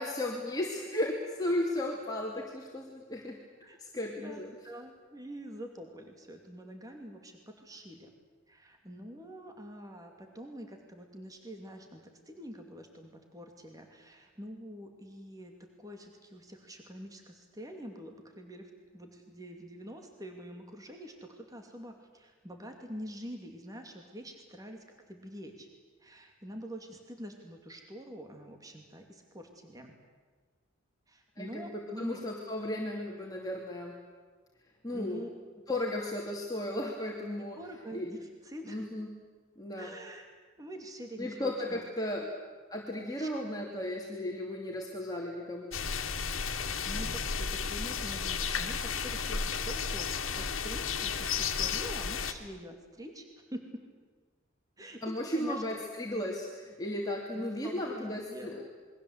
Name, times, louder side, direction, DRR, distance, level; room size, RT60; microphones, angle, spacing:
voice 1, 0.0-3.4 3.8-4.5 31.4-34.0 34.8-35.2 35.7-37.6 37.9-38.1 38.7-39.1 39.6-39.9 41.2-42.2 42.7-45.8 55.0-58.6, left 1 dB, 20° left, -2 dB, 2.8 m, -35 dB
voice 2, 4.1-8.1 8.5-25.7 26.0-29.9 31.1-32.2 34.9-35.3 37.5-38.8 39.7-40.3 40.6-41.9 42.2-42.3 43.2-43.3 46.4-53.8 54.8-55.6 57.3-58.7, equal, 15° right, 4 dB, 2.6 m, -46 dB
sound 1, 45.7-52.3, left 6 dB, 80° left, 2.0 m, -33 dB
28.0 x 22.5 x 8.2 m, 1.4 s
head